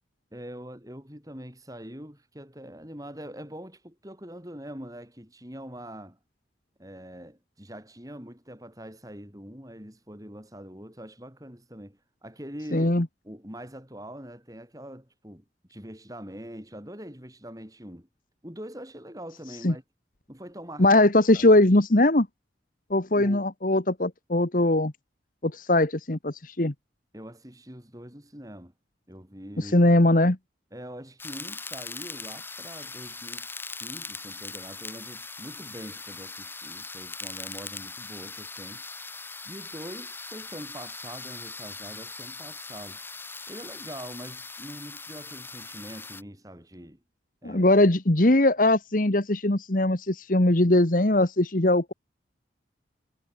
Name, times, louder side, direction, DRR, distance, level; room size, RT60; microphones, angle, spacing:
voice 1, 0.3-6.2 6.8-15.4 15.7-18.1 18.4-19.8 20.3-20.9 21.3-21.5 23.1-23.4 27.1-28.7 29.1-29.9 30.7-33.5 33.8-38.8 39.4-43.0 43.5-47.0 47.4-47.7, equal, 20° right, 6.6 m, -43 dB
voice 2, 12.7-13.1 19.6-19.7 20.8-22.3 22.9-24.9 25.4-26.7 29.6-30.4 47.4-51.9, left 1 dB, 50° left, 1.5 m, -21 dB
sound 1, 31.2-46.2, left 3 dB, 10° left, 5.1 m, -40 dB
head